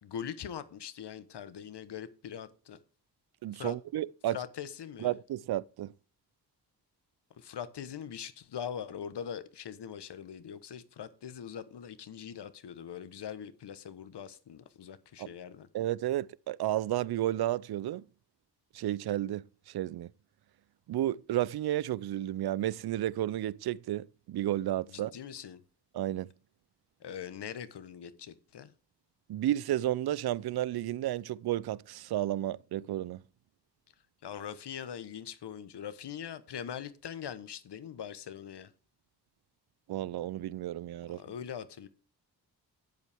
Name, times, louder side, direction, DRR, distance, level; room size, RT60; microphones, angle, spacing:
voice 1, 0.0-2.8 3.5-3.8 4.3-5.1 7.3-15.7 24.9-25.6 27.0-28.7 34.2-38.7 41.1-41.9, left 8 dB, 75° left, 1.2 m, -42 dB
voice 2, 3.4-4.4 5.0-5.9 15.2-15.3 15.7-18.0 18.7-20.1 20.9-25.1 25.9-26.3 29.3-33.2 39.9-41.2, right 13 dB, 65° right, 0.5 m, -32 dB
12.0 x 8.2 x 3.5 m
cardioid pair, 70°, 41 cm